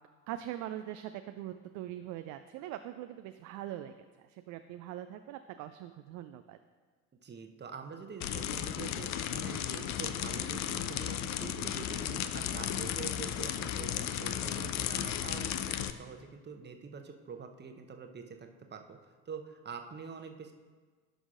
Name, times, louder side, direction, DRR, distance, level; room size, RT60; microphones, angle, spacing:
voice 1, 0.3-6.6, right 12 dB, 40° right, 9 dB, 0.4 m, -42 dB
voice 2, 7.2-19.0 19.3-20.5, right 5 dB, 25° right, 5 dB, 0.9 m, -45 dB
sound 1, 8.2-15.9, left 10 dB, 40° left, 0.5 m, -35 dB
16.0 x 6.2 x 2.5 m, 1.5 s
figure-of-eight pair, 55°, 46 cm